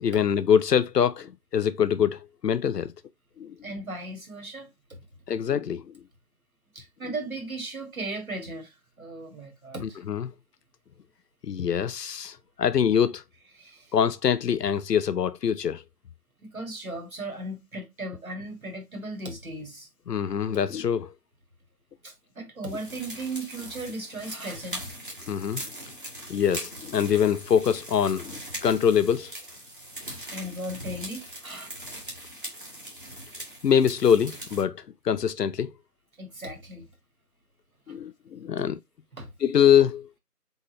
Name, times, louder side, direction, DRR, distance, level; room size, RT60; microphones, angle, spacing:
voice 1, 0.0-2.9 3.4-3.5 5.3-5.8 10.1-10.3 11.4-13.2 13.9-15.8 20.1-21.1 25.3-25.6 26.3-29.3 33.6-35.7 37.9-38.8 39.4-40.1, left 8 dB, 80° left, 0.5 m, -24 dB
voice 2, 3.6-4.7 6.7-10.0 13.6-14.0 16.4-19.9 22.0-24.8 30.3-31.7 36.2-36.9 37.9-38.0 38.6-38.7 39.2-39.3, right 2 dB, 60° right, 1.9 m, -37 dB
sound 1, 22.7-34.6, right 1 dB, 35° right, 1.4 m, -40 dB
4.0 x 3.8 x 3.0 m
figure-of-eight pair, 170°, 47 cm